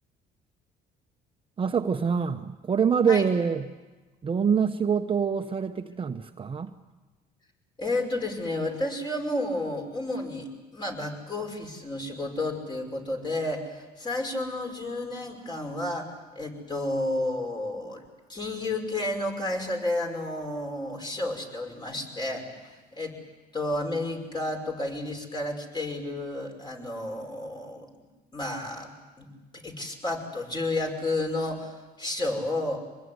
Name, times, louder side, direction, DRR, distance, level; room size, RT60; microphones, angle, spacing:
voice 1, 1.6-3.7 4.2-6.7, right 6 dB, 30° right, 6 dB, 1.0 m, -25 dB
voice 2, 7.8-10.5 10.7-18.0 18.3-23.2 23.5-27.9 28.3-29.3 29.6-32.8, left 2 dB, 25° left, 3 dB, 5.9 m, -31 dB
25.0 x 21.0 x 9.7 m, 1.2 s
cardioid pair, 110°, 17 cm